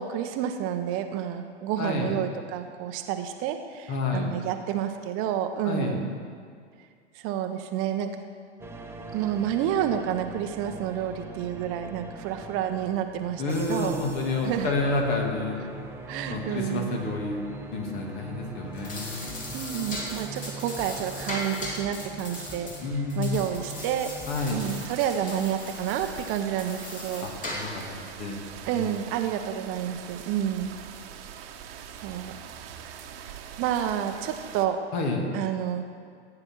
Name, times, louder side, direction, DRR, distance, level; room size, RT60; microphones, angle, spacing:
voice 1, 0.0-6.1 7.1-8.1 9.1-14.0 14.4-14.7 16.1-16.9 19.2-22.7 23.1-24.1 24.5-27.3 28.7-30.7 32.0-32.3 32.8-33.0 33.6-34.8 35.3-35.8, right 10 dB, 40° right, 6 dB, 0.9 m, -29 dB
voice 2, 1.8-2.1 3.9-4.3 5.6-6.0 13.4-15.6 16.3-17.4 17.7-19.5 22.8-23.4 24.3-24.6 27.2-27.8 28.2-28.4 28.7-28.9 34.9-35.2, left 3 dB, 45° left, 1 dB, 2.5 m, -29 dB
sound 1, 8.6-24.9, right 3 dB, 5° right, 0.9 m, -42 dB
sound 2, 18.6-27.9, left 1 dB, 25° left, 2.6 m, -38 dB
sound 3, 24.4-34.7, right 8 dB, 55° right, 1.2 m, -43 dB
15.5 x 8.9 x 4.6 m, 2.1 s
hypercardioid pair, 105°, 35 cm